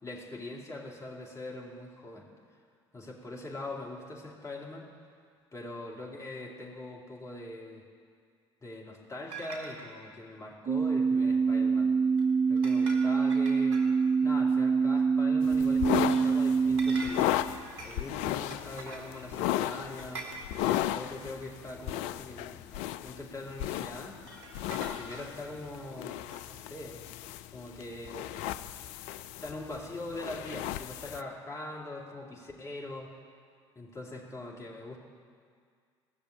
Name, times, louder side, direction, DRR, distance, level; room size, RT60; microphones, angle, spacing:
voice 1, 0.0-2.3 2.9-4.9 5.5-7.8 8.6-11.9 12.5-13.8 14.2-17.3 17.8-20.3 20.8-24.2 24.7-27.0 27.5-28.6 29.4-33.1 33.8-35.0, left 2 dB, 20° left, -2 dB, 2.7 m, -42 dB
sound 1, 9.3-9.9 12.2-12.3 12.6-14.1 15.9-16.4 16.8-18.1 18.5-19.3 19.6-20.9 21.8-21.9 24.1-25.5 26.3-26.4, right 3 dB, 70° right, 1.9 m, -44 dB
sound 2, 10.7-17.0, right 5 dB, 35° right, 1.2 m, -25 dB
sound 3, 15.4-31.2, left 13 dB, 55° left, 0.4 m, -35 dB
16.0 x 6.8 x 8.7 m, 2.1 s
figure-of-eight pair, 60°, 14 cm